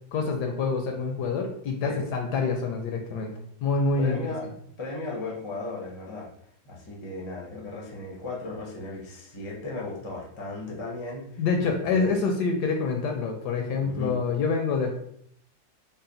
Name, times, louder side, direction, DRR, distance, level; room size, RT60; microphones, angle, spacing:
voice 1, 0.1-3.3 3.6-4.2 11.4-14.9, left 4 dB, 70° left, 3 dB, 1.0 m, -26 dB
voice 2, 4.0-4.5 4.8-6.3 6.6-11.4 11.9-12.1 13.8-14.2, left 2 dB, 40° left, -3 dB, 0.4 m, -36 dB
4.0 x 2.1 x 3.8 m, 0.69 s
omnidirectional pair, 2.1 m